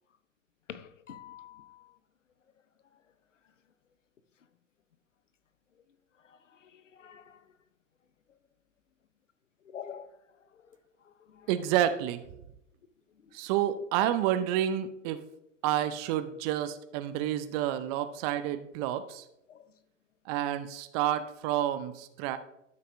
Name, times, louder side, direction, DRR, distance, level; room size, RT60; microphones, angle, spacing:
voice 1, 0.7-1.9 6.2-7.4 9.6-10.1 10.5-10.6 11.0-11.5 13.2-13.3 15.7-15.8 19.5-19.7 22.3-22.4, left 8 dB, 75° left, 0.8 m, -47 dB
voice 2, 11.5-12.2 13.3-15.2 15.6-19.2 20.3-22.4, right 11 dB, 30° right, 0.6 m, -29 dB
12.5 x 6.6 x 2.6 m
figure-of-eight pair, 100°, 37 cm